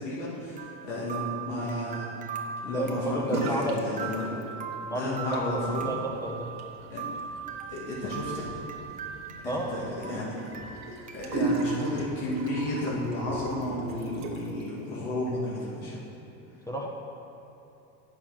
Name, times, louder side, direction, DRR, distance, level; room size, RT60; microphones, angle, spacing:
voice 1, 0.0-2.1 2.6-4.3 4.9-5.9 6.9-7.0 7.7-8.5 9.4-10.4 11.1-16.0, left 1 dB, 70° left, -6 dB, 2.5 m, -32 dB
sound 1, 0.6-9.8 10.0-11.5 11.8-11.9 12.5-12.6, right 6 dB, 20° right, 0.8 m, -39 dB
voice 2, 2.7-3.8 4.8-6.5 9.4-9.7 16.7-16.9, right 1 dB, 10° left, -1 dB, 1.1 m, -32 dB
sound 2, 3.2-3.9 4.1-4.8 5.2-14.6, right 3 dB, 45° right, 1.5 m, -36 dB
8.8 x 6.8 x 5.9 m, 2.8 s
supercardioid pair, 110°, 39 cm